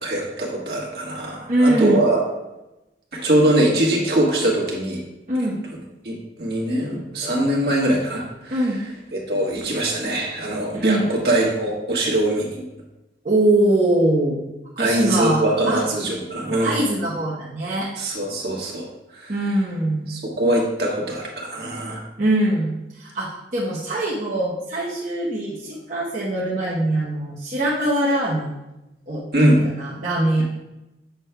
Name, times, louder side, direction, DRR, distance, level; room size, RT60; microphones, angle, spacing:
voice 1, 0.0-2.2 3.1-5.0 6.0-8.6 9.1-12.6 14.8-16.8 18.0-18.8 19.1-19.4 20.1-22.0 29.3-29.6, right 1 dB, 60° right, -2 dB, 1.5 m, -22 dB
voice 2, 1.5-2.0 5.3-5.6 8.5-8.8 10.7-11.1 13.2-14.5 14.8-15.8 16.6-17.9 19.3-20.1 22.2-28.6 29.1-30.4, right 1 dB, 45° right, -7 dB, 0.9 m, -22 dB
8.0 x 6.3 x 2.2 m, 0.97 s
head